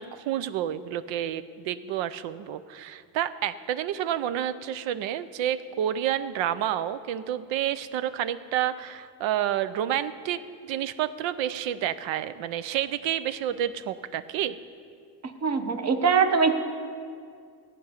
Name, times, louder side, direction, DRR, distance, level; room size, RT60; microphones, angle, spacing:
voice 1, 0.0-14.6, right 11 dB, 90° right, 14 dB, 0.7 m, -29 dB
voice 2, 15.4-16.5, right 5 dB, 35° right, 8 dB, 0.9 m, -22 dB
15.0 x 5.3 x 9.6 m, 2.3 s
cardioid pair, 150°, 44 cm